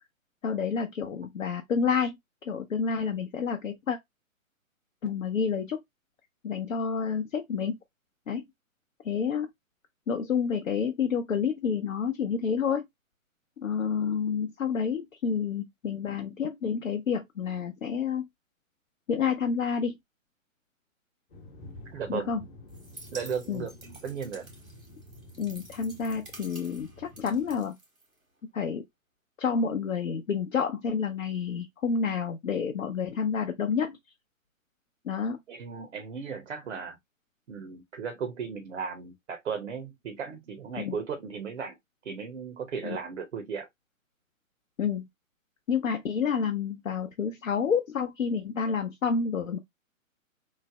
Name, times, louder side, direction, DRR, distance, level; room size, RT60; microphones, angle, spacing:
voice 1, 0.4-2.2 2.4-4.0 5.0-5.8 6.4-7.8 8.3-8.4 9.0-9.5 10.1-12.8 13.6-18.3 19.1-20.0 22.1-22.4 23.5-23.7 25.4-27.8 28.5-28.8 29.4-34.0 35.0-35.4 40.8-41.0 42.8-43.0 44.8-45.1 45.7-49.6, left 6 dB, 65° left, 0.6 m, -29 dB
sound 1, 21.3-27.6, left 1 dB, 40° left, 1.0 m, -50 dB
voice 2, 21.9-22.3 23.1-24.5 35.5-37.0 37.5-41.8 42.0-43.7, right 6 dB, 60° right, 0.7 m, -36 dB
sound 2, 22.7-28.4, right 2 dB, 90° right, 1.6 m, -50 dB
3.2 x 2.1 x 3.4 m
figure-of-eight pair, 130°, 41 cm